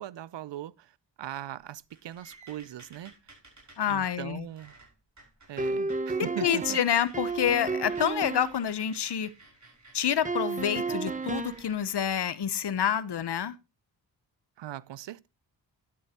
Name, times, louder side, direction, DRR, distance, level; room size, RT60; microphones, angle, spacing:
voice 1, 0.0-3.1 3.9-4.7 5.5-6.8 14.6-15.3, right 12 dB, 70° right, 0.6 m, -40 dB
sound 1, 1.6-6.1 6.4-6.6 6.8-12.2, right 2 dB, 40° right, 5.2 m, -55 dB
voice 2, 3.8-4.5 6.4-9.3 9.9-13.6, left 9 dB, 60° left, 1.0 m, -28 dB
sound 2, 5.6-8.6 10.2-11.7, right 4 dB, 15° right, 0.8 m, -32 dB
11.5 x 9.6 x 2.9 m
cardioid pair, 60°, 45 cm